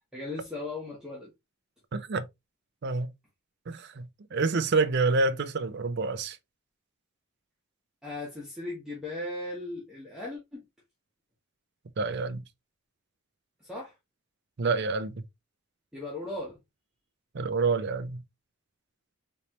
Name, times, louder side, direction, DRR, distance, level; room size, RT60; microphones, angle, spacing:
voice 1, 0.1-1.3 8.0-10.6 13.6-13.9 15.9-16.6, left 2 dB, 5° right, 1.2 m, -37 dB
voice 2, 1.9-2.3 2.8-3.1 3.7-6.4 12.0-12.4 14.6-15.1 17.3-18.2, right 3 dB, 50° right, 0.5 m, -28 dB
4.1 x 3.2 x 2.9 m
head